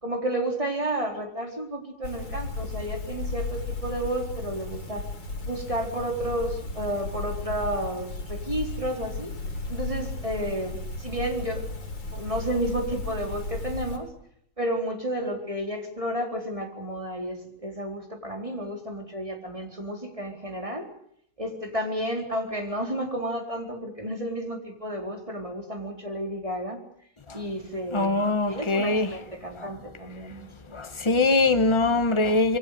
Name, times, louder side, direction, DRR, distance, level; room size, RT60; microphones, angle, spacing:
voice 1, 0.0-5.1 5.5-9.3 9.7-11.7 12.1-14.1 14.6-20.9 21.4-26.8 27.3-28.2 28.5-30.8, right 1 dB, 15° right, 4.3 m, -31 dB
sound 1, 2.0-14.0, left 2 dB, 80° left, 5.6 m, -35 dB
voice 2, 27.9-29.2 29.6-29.7 30.7-32.6, left 3 dB, 15° left, 1.1 m, -22 dB
26.5 x 23.0 x 6.8 m
omnidirectional pair, 2.4 m